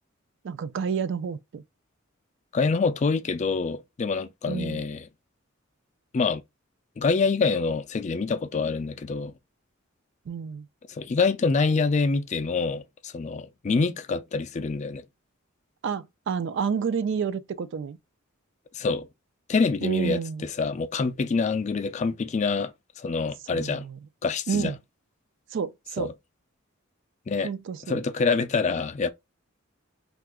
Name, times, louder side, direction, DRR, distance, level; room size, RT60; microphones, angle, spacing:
voice 1, 0.4-1.6 4.5-4.9 10.3-10.7 15.8-18.0 19.8-20.4 23.5-24.0 24.5-24.7 25.5-26.1 27.4-28.0, right 6 dB, 60° right, 0.4 m, -29 dB
voice 2, 2.5-5.1 6.1-6.4 7.0-9.3 10.9-15.0 18.7-19.1 19.5-23.8 24.2-24.7 26.0-26.1 27.3-27.5 27.9-29.1, left 4 dB, 35° left, 0.4 m, -26 dB
2.7 x 2.4 x 3.5 m
head